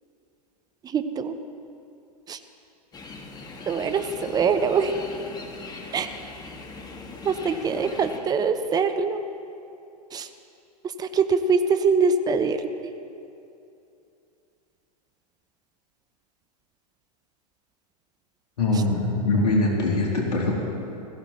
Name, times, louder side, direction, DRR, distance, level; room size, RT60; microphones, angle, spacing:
voice 1, 0.8-1.3 2.3-2.4 3.7-5.0 5.9-6.1 7.2-9.2 10.1-10.3 11.0-12.7, right 5 dB, 20° right, 9 dB, 0.8 m, -23 dB
sound 1, 2.9-8.2, left 3 dB, 20° left, 1.6 m, -40 dB
voice 2, 18.6-20.5, left 2 dB, 75° left, -2 dB, 3.3 m, -22 dB
16.5 x 14.5 x 4.3 m, 2.7 s
hypercardioid pair, 100°, 21 cm